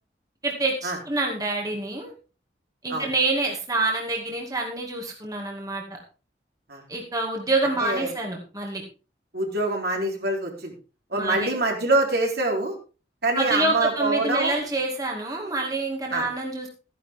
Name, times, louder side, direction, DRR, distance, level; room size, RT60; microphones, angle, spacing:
voice 1, 0.4-2.1 2.8-5.8 6.9-8.8 11.1-11.5 13.3-16.7, right 2 dB, 20° right, 0 dB, 2.3 m, -27 dB
voice 2, 7.8-8.1 9.3-10.7 11.1-12.7 13.2-14.6 16.1-16.3, right 2 dB, 65° right, 1 dB, 3.7 m, -25 dB
14.0 x 10.5 x 3.6 m, 0.34 s
head